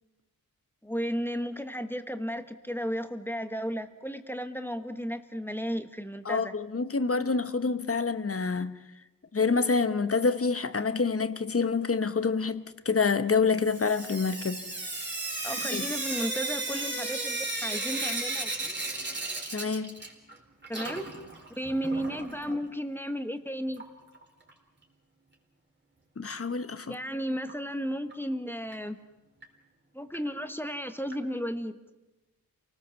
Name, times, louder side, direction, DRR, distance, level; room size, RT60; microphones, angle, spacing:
voice 1, 0.8-6.5 15.4-18.7 20.7-21.1 21.6-23.8 26.9-29.0 29.9-31.7, equal, 5° left, 1.3 m, -34 dB
voice 2, 6.3-8.7 9.3-14.6 15.7-15.9 19.5-19.9 26.2-26.9, left 4 dB, 40° left, 1.1 m, -27 dB
Sink (filling or washing) / Drip, 13.6-20.4 20.6-22.6 23.7-23.8 24.1-24.2 24.5-24.6 27.5-27.6 28.1-28.2 28.7-28.8 29.4-29.5 30.1-30.2 31.1-31.2, right 2 dB, 30° right, 4.0 m, -34 dB
28.5 x 19.0 x 7.2 m
wide cardioid pair, 100°, 36 cm